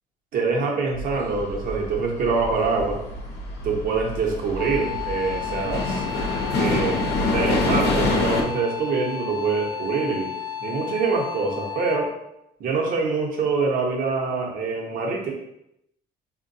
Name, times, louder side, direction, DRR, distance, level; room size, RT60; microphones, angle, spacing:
voice 1, 0.3-3.0 3.6-6.0 6.6-7.1 7.3-10.3 10.6-12.1 12.6-15.3, right 4 dB, 55° right, 0 dB, 0.8 m, -25 dB
sound 1, 0.9-8.4, left 2 dB, 90° left, 0.7 m, -27 dB
Wind instrument woodwind instrument, 4.6-12.2, left 9 dB, 10° right, 0.6 m, -33 dB
3.6 x 2.2 x 2.6 m, 0.82 s
cardioid pair, 110°, 17 cm